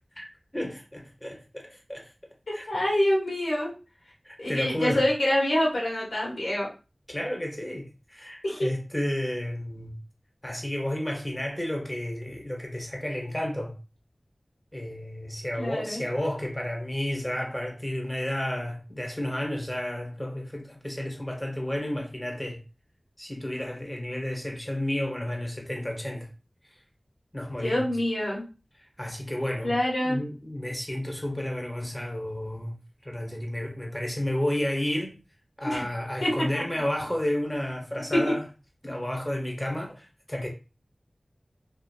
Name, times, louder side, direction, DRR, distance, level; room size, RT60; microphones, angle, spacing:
voice 1, 0.5-2.6 4.2-5.0 7.1-10.0 10.4-13.8 14.7-22.6 23.2-26.3 27.3-27.9 29.0-29.8 30.0-32.8 33.0-35.2 35.6-38.4 38.8-40.5, left 1 dB, 10° left, 0.8 m, -32 dB
voice 2, 2.5-3.7 4.4-6.7 8.4-8.7 15.6-16.0 27.6-28.4 29.6-30.2 35.6-35.8 36.2-36.6 38.1-38.3, left 1 dB, 90° left, 1.1 m, -26 dB
2.6 x 2.4 x 2.2 m
wide cardioid pair, 50°, 0 cm